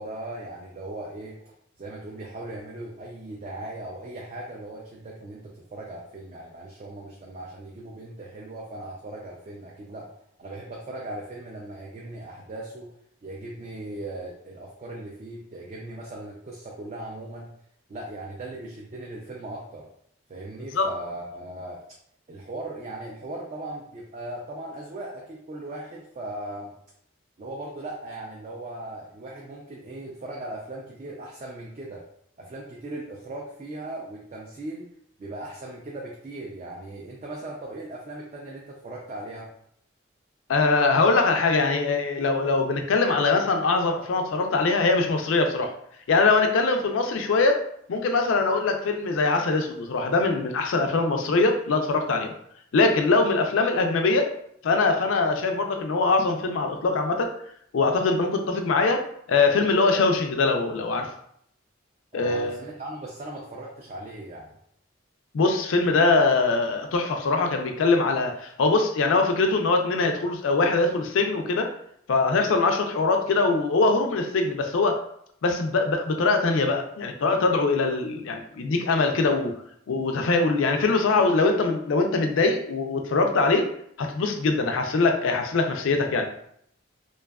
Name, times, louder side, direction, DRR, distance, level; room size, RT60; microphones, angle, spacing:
voice 1, 0.0-1.4 1.8-10.1 10.4-12.9 13.2-17.5 17.9-19.9 20.3-21.8 22.3-26.8 27.4-32.0 32.4-34.9 35.2-39.5 62.1-64.5, right 1 dB, 35° right, -2 dB, 0.3 m, -38 dB
voice 2, 40.5-45.7 46.1-47.6 47.9-52.3 52.7-54.3 54.6-57.3 57.7-59.0 59.3-61.1 62.1-62.6 65.3-71.7 72.1-75.0 75.4-79.5 79.9-83.7 84.0-86.3, left 3 dB, 80° left, 5 dB, 0.4 m, -22 dB
2.6 x 2.3 x 2.2 m, 0.68 s
head